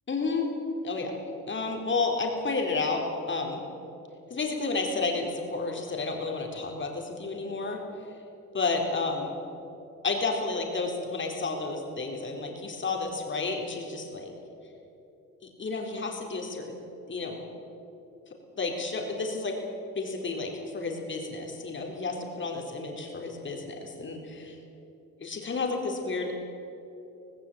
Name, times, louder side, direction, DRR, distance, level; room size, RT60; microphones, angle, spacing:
voice 1, 0.1-0.5 0.8-1.1 1.5-3.6 4.3-7.8 8.5-9.4 10.0-14.3 15.4-16.8 17.1-17.4 18.6-19.6 20.0-24.6 25.2-26.3, left 3 dB, 40° left, 1 dB, 4.1 m, -31 dB
18.0 x 17.0 x 8.8 m, 2.9 s
cardioid pair, 90°, 30 cm